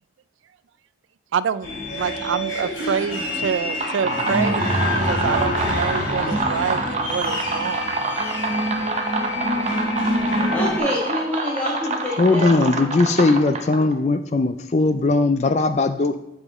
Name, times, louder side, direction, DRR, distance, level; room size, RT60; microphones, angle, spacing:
voice 1, 1.3-7.9, right 7 dB, 90° right, 16 dB, 0.4 m, -27 dB
sound 1, 1.6-10.8, equal, 90° left, 2.1 m, -26 dB
sound 2, 3.6-13.9, right 3 dB, 35° right, 0.8 m, -27 dB
Wind instrument woodwind instrument, 6.6-13.2, right 2 dB, 60° left, 1.9 m, -45 dB
voice 2, 10.2-12.5, left 1 dB, 10° left, -6 dB, 1.5 m, -26 dB
voice 3, 12.2-16.2, left 3 dB, 35° left, 10 dB, 0.4 m, -19 dB
8.0 x 7.2 x 3.6 m, 0.91 s
head